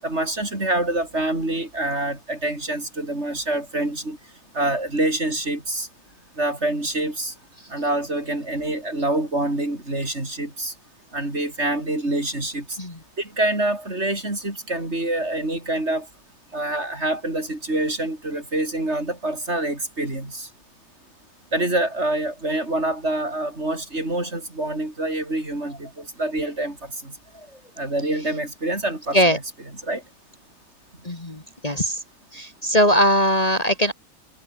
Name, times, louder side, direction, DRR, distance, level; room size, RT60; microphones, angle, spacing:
voice 1, 0.0-4.2 4.5-5.9 6.4-7.3 7.7-10.7 11.1-12.8 13.2-16.1 16.5-20.5 21.5-27.2 27.8-29.4 29.8-30.0, right 1 dB, 45° right, 6.1 m, -26 dB
voice 2, 31.0-32.0 32.3-33.9, equal, 25° left, 2.5 m, -20 dB
omnidirectional pair, 1.6 m